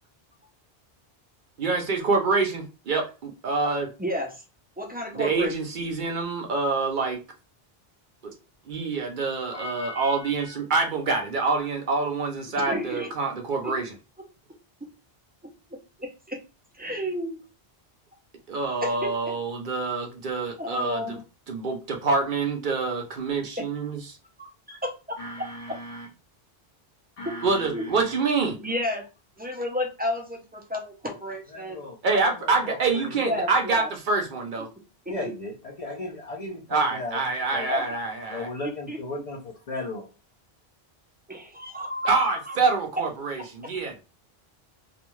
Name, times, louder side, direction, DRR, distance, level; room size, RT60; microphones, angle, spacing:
voice 1, 1.6-3.9 5.1-7.2 8.2-8.3 8.7-13.9 18.5-21.2 21.5-24.0 27.4-28.6 32.0-34.7 36.7-38.5 42.0-44.0, right 4 dB, 60° right, 3 dB, 0.7 m, -26 dB
voice 2, 4.0-4.4 4.8-5.5 12.5-13.1 13.6-13.7 15.7-16.4 16.7-17.4 18.8-19.3 20.6-21.2 23.6-23.7 24.4-25.8 27.2-27.3 27.7-27.9 28.6-29.1 29.4-31.8 33.1-33.9 35.2-35.3 37.7-37.9 38.6-39.0 41.3-42.6 43.6-43.7, left 1 dB, 15° right, 1 dB, 0.3 m, -32 dB
voice 3, 9.5-10.6 25.2-26.1 27.2-28.2 31.5-33.4 35.1-37.7 38.3-40.1, left 2 dB, 50° left, -1 dB, 0.5 m, -37 dB
2.4 x 2.2 x 3.0 m, 0.31 s
omnidirectional pair, 1.0 m